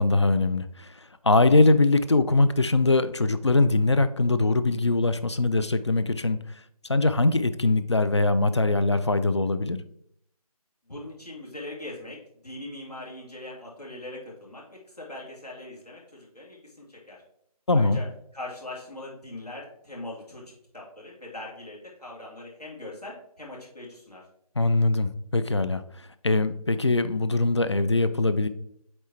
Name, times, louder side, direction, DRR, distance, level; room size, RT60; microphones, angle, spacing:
voice 1, 0.0-6.4 6.9-9.8 17.7-18.0 24.6-28.5, left 2 dB, 45° left, 12 dB, 0.4 m, -22 dB
voice 2, 10.9-12.2 12.4-17.2 17.7-18.0 18.3-24.2, left 2 dB, 85° left, -4 dB, 2.7 m, -41 dB
7.9 x 3.2 x 4.3 m, 0.71 s
figure-of-eight pair, 160°, 20 cm